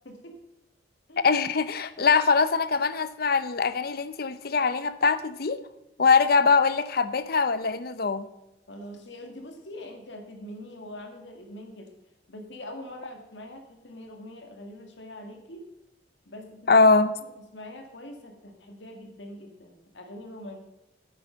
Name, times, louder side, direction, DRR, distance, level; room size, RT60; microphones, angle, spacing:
voice 1, 0.0-0.4 1.1-1.4 8.7-11.9 12.3-15.7 16.3-16.8 17.2-20.6, left 1 dB, 80° left, 4 dB, 2.1 m, -43 dB
voice 2, 1.2-5.6 6.0-8.2 16.7-17.1, left 4 dB, 55° left, 13 dB, 0.7 m, -22 dB
10.0 x 8.7 x 5.2 m, 0.94 s
head